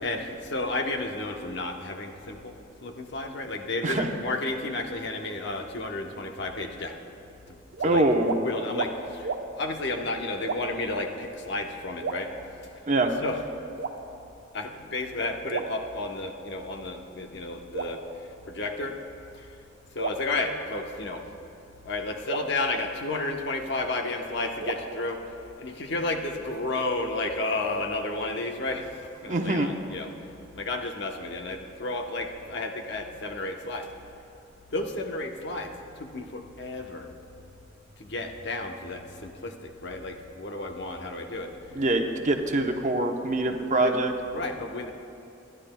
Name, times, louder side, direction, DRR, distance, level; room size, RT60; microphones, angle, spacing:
voice 1, 0.0-2.5 2.8-6.9 7.5-8.0 8.4-9.3 9.6-12.3 13.2-13.4 14.5-18.0 18.5-19.0 19.3-19.4 19.9-21.3 21.8-25.2 25.6-28.9 29.2-30.1 30.6-33.9 34.7-35.7 36.0-37.1 38.0-41.5 43.8-44.0 44.3-44.9, left 2 dB, 65° left, 3 dB, 1.0 m, -32 dB
sound 1, 7.7-7.9 8.2-8.4 8.7-8.9 9.2-9.4 10.4-10.9 12.0-12.9 13.8-14.5 15.5-16.5 17.7-18.9 20.0-21.2 22.3-23.7 24.6-25.8, right 4 dB, 90° right, 0.8 m, -36 dB
voice 2, 7.8-8.4 12.9-13.1 29.3-29.7 41.8-44.1, right 2 dB, 40° right, 4 dB, 0.8 m, -24 dB
27.0 x 11.5 x 2.2 m, 2.6 s
head